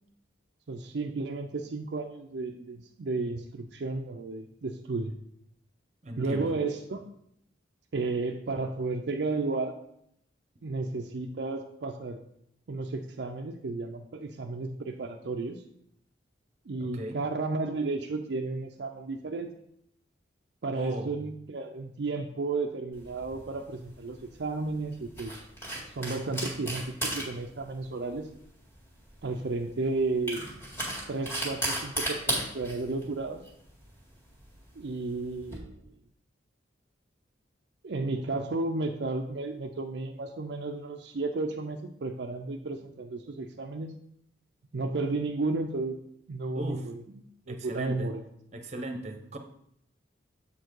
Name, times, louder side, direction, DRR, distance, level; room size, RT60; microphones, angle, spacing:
voice 1, 0.7-5.2 6.2-7.1 7.9-9.7 10.6-12.2 12.7-15.6 16.7-19.5 20.6-25.4 25.9-28.3 29.2-30.4 31.1-33.4 34.8-35.9 37.8-43.9 44.7-46.0 46.3-47.0 47.5-48.2, right 3 dB, 60° right, 3 dB, 0.5 m, -33 dB
voice 2, 6.0-6.5 16.8-17.2 20.7-21.2 46.5-46.9 47.5-48.1 48.5-49.4, right 1 dB, 35° right, 5 dB, 0.8 m, -37 dB
sound 1, 22.9-35.6, right 1 dB, 15° left, 1.9 m, -36 dB
7.3 x 4.5 x 4.6 m, 0.73 s
head